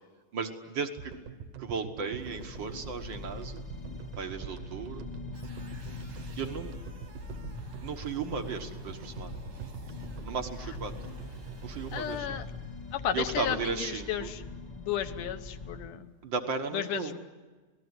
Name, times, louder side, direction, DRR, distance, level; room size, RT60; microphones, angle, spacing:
voice 1, 0.3-1.1 1.6-3.6 4.2-5.1 6.4-6.8 7.8-9.4 10.2-10.9 11.6-12.4 13.1-14.3 16.2-17.1, right 5 dB, 55° right, 5 dB, 1.3 m, -35 dB
sound 1, 1.0-13.3, right 6 dB, 70° right, 2.8 m, -45 dB
sound 2, 2.2-15.9, left 3 dB, 55° left, 0.4 m, -43 dB
sound 3, 5.3-12.2, right 3 dB, 85° right, 6.4 m, -55 dB
voice 2, 11.9-12.5 12.9-14.4 14.8-16.1 16.7-17.2, left 10 dB, 70° left, 8 dB, 2.6 m, -33 dB
27.5 x 19.5 x 9.6 m, 1.3 s
omnidirectional pair, 4.0 m